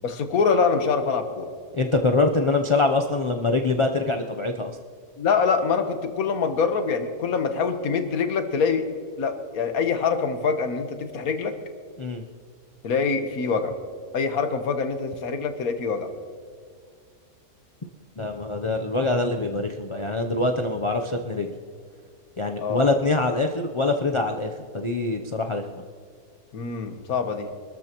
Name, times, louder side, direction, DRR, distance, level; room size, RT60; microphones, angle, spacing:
voice 1, 0.0-1.5 5.2-8.9 9.2-11.5 12.8-13.7 14.1-16.1 22.6-22.9 26.5-27.5, left 5 dB, 70° left, 7 dB, 1.6 m, -24 dB
voice 2, 1.7-4.8 12.0-12.3 18.2-21.6 22.4-25.7, left 3 dB, 40° left, 3 dB, 0.4 m, -24 dB
24.5 x 13.5 x 3.0 m, 2.1 s
omnidirectional pair, 1.6 m